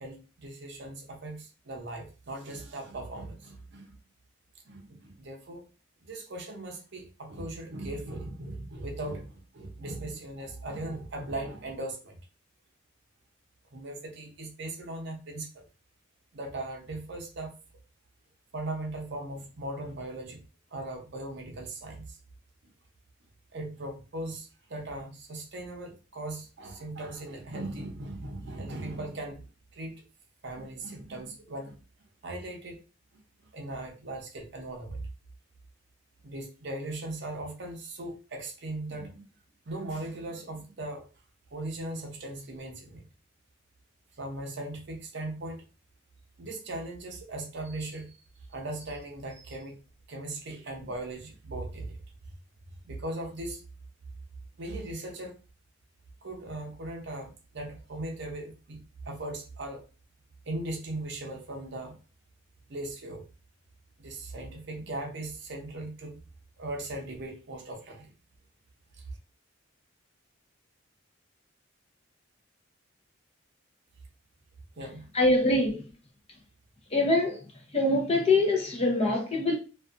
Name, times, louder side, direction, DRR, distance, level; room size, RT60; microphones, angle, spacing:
voice 1, 0.0-3.9 4.7-5.6 6.0-12.1 13.7-15.5 16.3-17.5 18.5-20.4 20.7-22.1 23.5-29.4 29.7-29.9 30.4-31.7 32.2-32.8 33.5-35.0 36.2-39.2 39.7-41.0 41.5-43.0 44.2-45.6 46.4-48.1 48.5-49.8 50.1-52.0 52.8-53.6 54.6-55.3 56.2-58.8 59.1-59.8 60.5-62.0 62.7-63.2 64.0-66.2 66.6-68.1 74.8-75.0, right 2 dB, 55° right, 0.6 m, -38 dB
voice 2, 75.1-75.9 76.9-77.4 77.7-79.6, left 2 dB, 30° left, 0.6 m, -24 dB
2.5 x 2.3 x 2.4 m
head